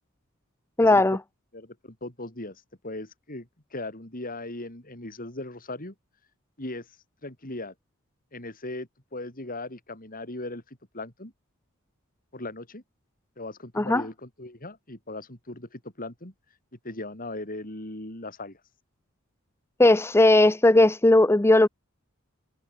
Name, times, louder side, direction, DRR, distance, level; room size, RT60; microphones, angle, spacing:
voice 1, 0.8-1.2 13.8-14.0 19.8-21.7, left 2 dB, 10° left, 0.5 m, -18 dB
voice 2, 1.5-5.9 6.6-6.9 7.2-7.7 8.3-11.3 12.3-12.8 13.4-16.3 16.8-18.6, left 2 dB, 40° left, 4.8 m, -38 dB
head